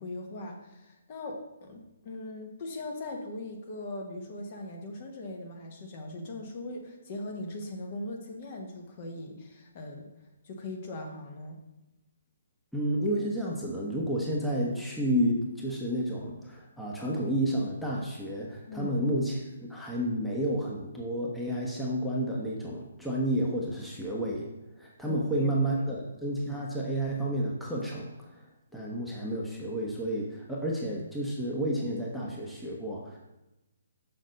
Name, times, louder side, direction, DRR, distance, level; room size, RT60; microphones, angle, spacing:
voice 1, 0.0-10.1 10.4-11.6 18.7-18.9 25.0-25.8, left 2 dB, 40° left, 2 dB, 1.4 m, -40 dB
voice 2, 12.7-24.5 24.8-28.5 28.7-33.2, right 1 dB, ahead, -4 dB, 1.1 m, -31 dB
6.4 x 6.1 x 4.0 m, 0.97 s
figure-of-eight pair, 140°, 0 cm